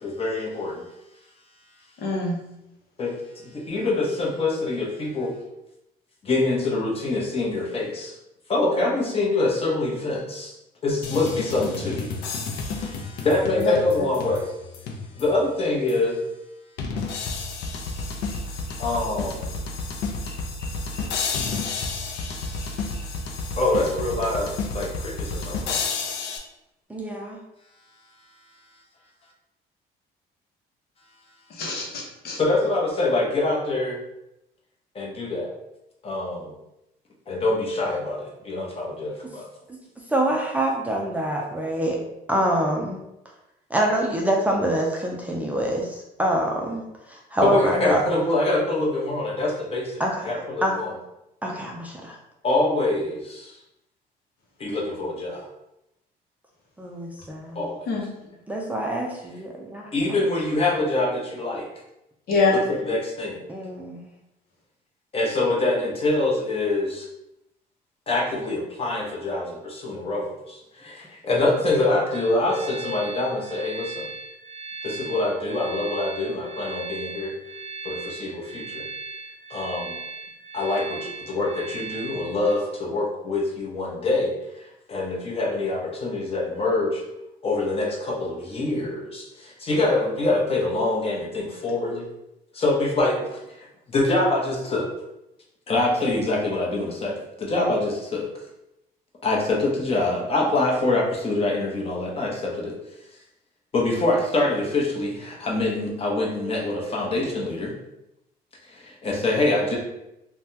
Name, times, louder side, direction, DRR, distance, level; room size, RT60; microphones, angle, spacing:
voice 1, 0.0-0.8 3.0-5.3 6.2-8.1 8.5-10.5 10.8-12.2 12.5-14.4 15.2-16.2 18.8-19.4 23.6-25.8 32.4-34.0 34.9-35.5 36.0-36.5 37.3-39.4 47.4-50.9 52.4-53.6 54.6-55.4 57.5-57.8 59.9-61.7 62.5-63.4 65.1-67.1 68.1-74.1 74.8-77.3 77.8-78.9 79.5-80.0 80.5-84.3 84.9-87.0 87.4-92.1 92.5-94.9 95.7-98.3 99.2-102.7 103.7-107.7 108.6-109.8, left 2 dB, 35° left, -2 dB, 0.9 m, -25 dB
voice 2, 2.0-2.4 13.6-13.7 20.2-20.7 31.6-32.4 57.9-58.0 62.3-62.6, left 3 dB, 65° left, -1 dB, 0.8 m, -25 dB
sound 1, 11.0-15.4 15.9-16.0 16.8-26.4, left 4 dB, 85° left, 0.5 m, -31 dB
voice 3, 26.9-27.4 39.7-39.8 40.1-42.0 42.3-43.0 43.7-48.0 50.0-50.3 50.6-50.8 51.4-52.2 56.8-57.6 58.5-60.2 63.5-64.1, right 1 dB, 10° right, -2 dB, 0.4 m, -26 dB
sound 2, 72.1-82.5, right 3 dB, 90° right, 0.5 m, -38 dB
3.3 x 2.2 x 2.7 m, 0.87 s
cardioid pair, 110°, 17 cm